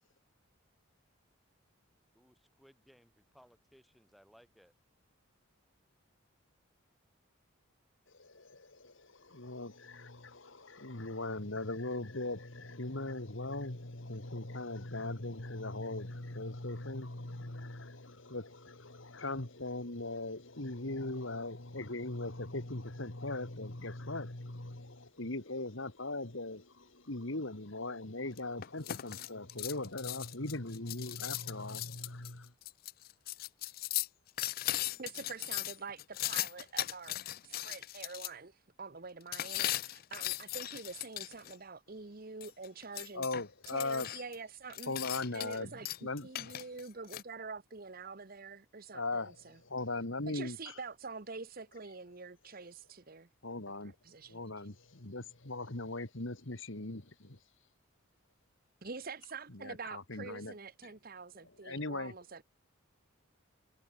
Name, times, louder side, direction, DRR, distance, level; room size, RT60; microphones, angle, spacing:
voice 1, 2.1-4.7, equal, ahead, 5.2 m, -63 dB
voice 2, 8.1-32.5 43.1-44.1 44.9-46.7 48.9-50.8 53.4-53.9 54.3-57.4 59.5-60.5 60.8-60.9 61.4-62.1, left 2 dB, 60° left, 2.1 m, -40 dB
sound 1, 28.4-38.3 39.3-41.6 42.4-44.3 44.7-45.6 45.8-47.2, left 15 dB, 45° left, 0.3 m, -38 dB
voice 3, 35.0-43.3 43.7-44.9 45.3-45.9 46.2-49.5 50.3-53.3 53.8-54.4 58.8-62.4, right 4 dB, 45° right, 1.0 m, -46 dB
head